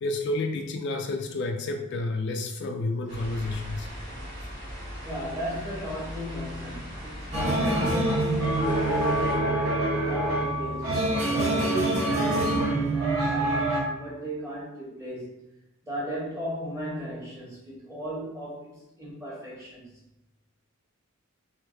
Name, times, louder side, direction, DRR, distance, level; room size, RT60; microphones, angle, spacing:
voice 1, 0.0-3.9, left 2 dB, 55° left, 4 dB, 0.3 m, -30 dB
sound 1, 3.1-9.3, equal, 55° right, 1.5 m, -39 dB
voice 2, 5.0-15.3 15.9-19.8, equal, 15° right, -6 dB, 1.4 m, -36 dB
sound 2, 7.3-13.8, right 2 dB, 80° right, 0.9 m, -25 dB
3.6 x 3.0 x 3.2 m, 0.92 s
head